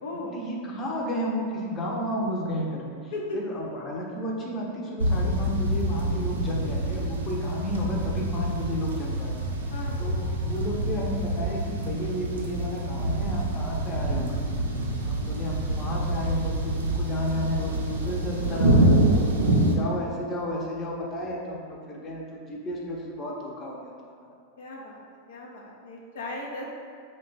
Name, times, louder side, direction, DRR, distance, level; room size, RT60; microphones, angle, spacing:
voice 1, 0.1-9.4 10.0-14.4 15.1-18.9 19.4-24.3, equal, 30° left, -2 dB, 0.6 m, -32 dB
sound 1, 5.0-19.7, right 1 dB, 90° right, 0.4 m, -26 dB
voice 2, 9.7-10.1 24.6-25.0 25.3-26.6, left 2 dB, 75° left, -2 dB, 0.4 m, -36 dB
2.8 x 2.2 x 4.0 m, 2.2 s
hypercardioid pair, 105°, 0 cm